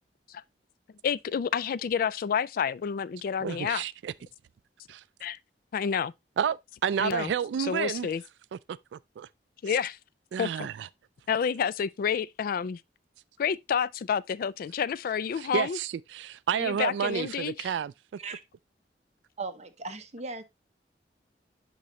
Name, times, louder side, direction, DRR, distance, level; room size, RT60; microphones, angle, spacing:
voice 1, 1.0-3.8 5.2-5.4 5.7-6.1 7.0-7.3 7.6-8.2 9.6-10.0 10.4-10.7 11.3-12.8 13.4-15.8 16.5-17.7, left 7 dB, 55° left, 0.3 m, -29 dB
voice 2, 3.4-4.1 4.9-5.0 6.4-8.1 8.7-9.3 10.3-10.9 15.4-17.9, right 8 dB, 80° right, 0.3 m, -30 dB
voice 3, 19.4-20.4, right 3 dB, 40° right, 1.0 m, -38 dB
10.5 x 3.9 x 3.0 m
head